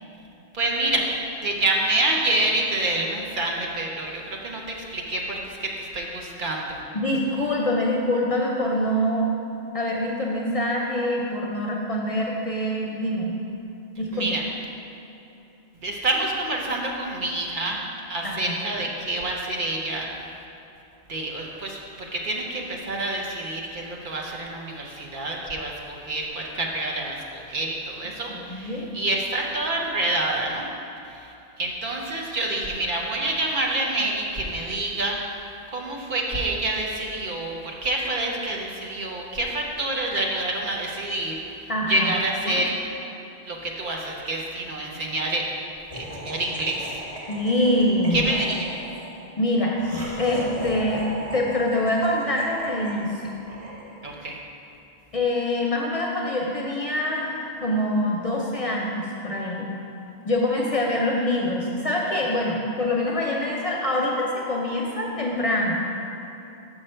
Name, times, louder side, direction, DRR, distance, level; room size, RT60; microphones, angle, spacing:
voice 1, 0.5-1.1 1.4-6.8 14.1-14.4 15.8-17.8 18.1-20.1 21.1-30.7 31.1-35.2 35.7-42.7 43.4-45.5 45.9-47.0 48.1-48.7 54.0-54.4, right 2 dB, 50° right, -1 dB, 0.8 m, -27 dB
voice 2, 6.9-9.3 9.7-13.4 14.0-14.3 18.2-18.5 28.3-28.9 41.7-42.1 42.5-42.6 47.3-48.3 49.4-49.8 50.2-51.1 51.3-53.4 55.1-59.7 60.2-65.7, left 1 dB, 40° left, -2 dB, 0.6 m, -25 dB
Laughter, 45.9-54.3, equal, 35° right, 1.4 m, -38 dB
6.3 x 6.2 x 4.4 m, 2.9 s
omnidirectional pair, 1.1 m